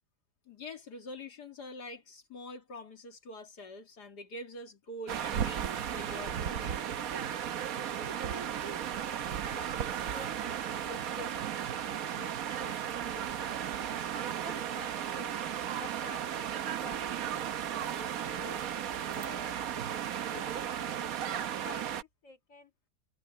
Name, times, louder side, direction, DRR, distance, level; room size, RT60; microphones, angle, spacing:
voice 1, 0.5-7.1, left 1 dB, 80° left, 2.9 m, -45 dB
sound 1, 5.1-22.0, right 9 dB, 65° right, 1.3 m, -35 dB
voice 2, 7.9-14.0 14.4-15.4 15.8-20.0 20.3-22.7, left 3 dB, 55° left, 3.8 m, -51 dB
omnidirectional pair, 1.7 m